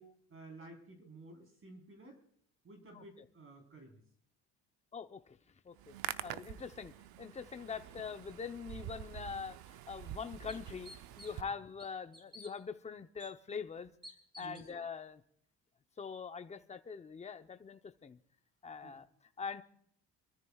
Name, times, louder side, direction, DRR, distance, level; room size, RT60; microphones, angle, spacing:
voice 1, 0.0-2.2 2.6-4.0 11.4-11.6 14.4-14.7 18.8-19.1, right 2 dB, 35° right, 3 dB, 4.0 m, -54 dB
voice 2, 4.9-5.4 5.6-6.0 6.2-6.9 7.2-13.9 14.4-15.2 16.0-18.2 18.6-19.1 19.4-19.6, left 6 dB, 20° left, 8 dB, 0.8 m, -43 dB
Hands, 5.7-11.4, right 12 dB, 70° right, 0.8 m, -46 dB
sound 1, 9.4-9.5 10.0-10.1 10.5-11.5 11.8-12.5 13.2-13.3 14.0-14.7, equal, 15° right, 3.4 m, -53 dB
28.5 x 13.5 x 2.4 m, 0.65 s
cardioid pair, 130°, 38 cm